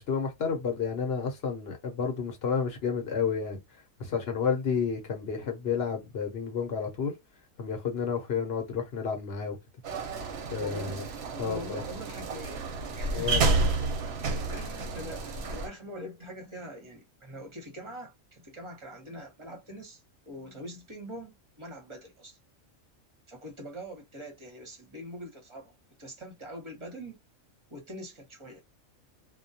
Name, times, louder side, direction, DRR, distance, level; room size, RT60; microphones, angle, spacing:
voice 1, 0.0-3.6 4.0-7.1 7.6-9.6 10.5-11.1 11.4-11.8 13.1-13.6, left 6 dB, 55° left, 0.9 m, -31 dB
sound 1, 9.8-15.7, right 3 dB, 60° right, 0.8 m, -30 dB
voice 2, 10.6-13.7 14.5-22.4 23.3-27.2 27.7-28.6, equal, 25° right, 0.8 m, -43 dB
2.3 x 2.2 x 2.6 m
omnidirectional pair, 1.4 m